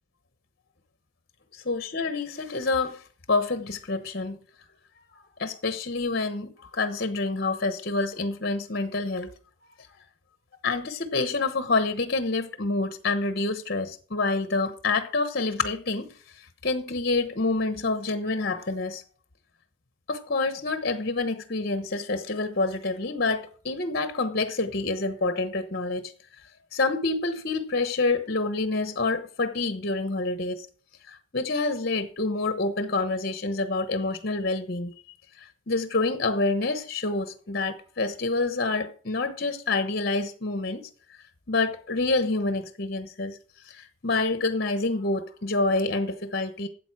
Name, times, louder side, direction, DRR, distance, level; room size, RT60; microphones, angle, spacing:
voice 1, 1.5-4.4 5.4-9.3 10.6-16.1 16.4-19.0 20.1-26.1 26.7-30.7 31.1-34.9 35.4-40.9 41.5-43.4 43.7-46.7, left 3 dB, 50° left, 1.0 m, -27 dB
13.0 x 8.1 x 4.8 m
head